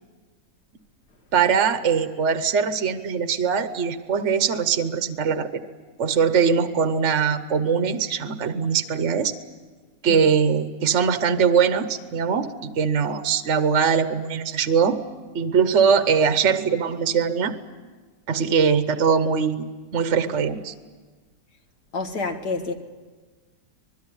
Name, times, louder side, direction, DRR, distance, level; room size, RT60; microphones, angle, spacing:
voice 1, 1.3-5.5 6.0-9.3 10.0-12.5 12.8-15.0 15.3-17.5 18.3-20.7, right 6 dB, 50° right, 10 dB, 1.3 m, -21 dB
voice 2, 21.9-22.7, left 3 dB, 75° left, 4 dB, 2.4 m, -27 dB
25.0 x 21.0 x 9.9 m, 1.4 s
omnidirectional pair, 1.8 m